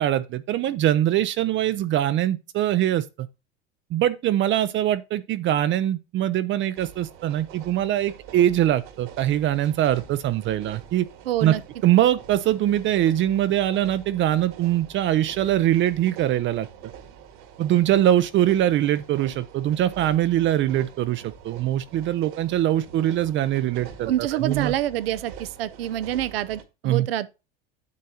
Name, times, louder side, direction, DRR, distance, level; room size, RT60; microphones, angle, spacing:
voice 1, 0.0-3.3 3.9-11.1 11.4-11.5 11.8-16.7 17.6-24.1 24.4-24.7 26.8-27.1, right 12 dB, 40° right, 0.6 m, -22 dB
sound 1, 6.7-26.6, right 8 dB, 65° right, 1.9 m, -45 dB
voice 2, 11.3-11.6 24.1-27.3, right 12 dB, 85° right, 0.8 m, -27 dB
9.5 x 6.4 x 2.8 m
hypercardioid pair, 100°, 29 cm